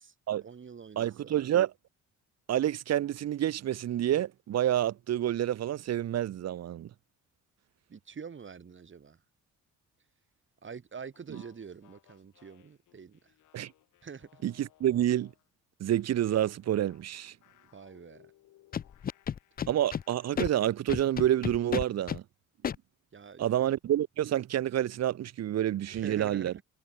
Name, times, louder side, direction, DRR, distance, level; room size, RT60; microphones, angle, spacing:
voice 1, 0.4-1.5 7.9-9.2 10.6-13.3 14.0-14.4 17.7-18.3 23.1-23.7 25.9-26.6, right 6 dB, 40° right, 4.5 m, -46 dB
voice 2, 1.0-1.7 2.5-6.9 13.5-13.7 14.4-15.3 15.8-17.3 19.7-22.2 23.4-26.5, right 12 dB, 60° right, 0.9 m, -28 dB
sound 1, 11.1-15.5 15.9-20.7, left 15 dB, 85° left, 6.7 m, -63 dB
Scratching (performance technique), 18.7-20.0 20.4-20.5 20.9-22.2 22.6-22.8, left 8 dB, 30° left, 0.5 m, -32 dB
cardioid pair, 90°, 30 cm